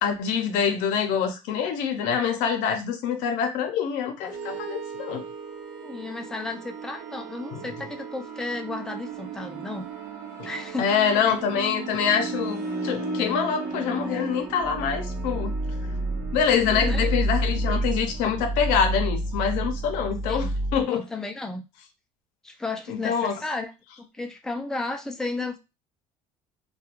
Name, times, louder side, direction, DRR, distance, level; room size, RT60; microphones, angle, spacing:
voice 1, 0.0-5.2 7.5-7.6 10.4-10.5 10.8-15.5 16.3-21.0 22.9-23.3, left 7 dB, 80° left, 5 dB, 0.6 m, -25 dB
sound 1, 4.3-20.8, right 2 dB, 70° right, 0.8 m, -31 dB
voice 2, 5.8-9.9 10.4-11.2 16.7-17.1 20.3-20.5 20.9-21.7 22.4-23.7 24.0-25.6, left 3 dB, 5° left, 4 dB, 0.4 m, -33 dB
2.3 x 2.2 x 2.9 m, 0.26 s
cardioid pair, 105°, 13 cm